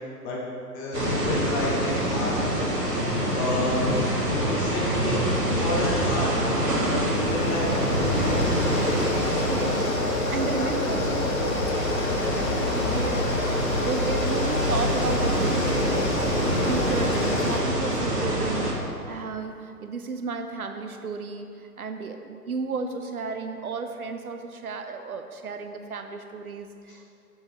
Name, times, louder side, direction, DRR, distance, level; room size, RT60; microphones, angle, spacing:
voice 1, 0.7-2.4 3.3-6.4 6.8-8.6 10.4-10.9 11.3-11.8 12.4-12.7 26.9-27.0, left 1 dB, 20° left, -4 dB, 1.0 m, -31 dB
sound 1, 0.9-18.7, equal, 85° right, 1.6 m, -26 dB
sound 2, 6.0-17.6, left 3 dB, 55° left, 1.0 m, -29 dB
voice 2, 9.2-11.7 12.9-13.3 13.6-16.3 16.6-27.1, right 4 dB, 65° right, 7 dB, 0.7 m, -33 dB
7.4 x 7.1 x 3.9 m, 2.5 s
figure-of-eight pair, 120°, 47 cm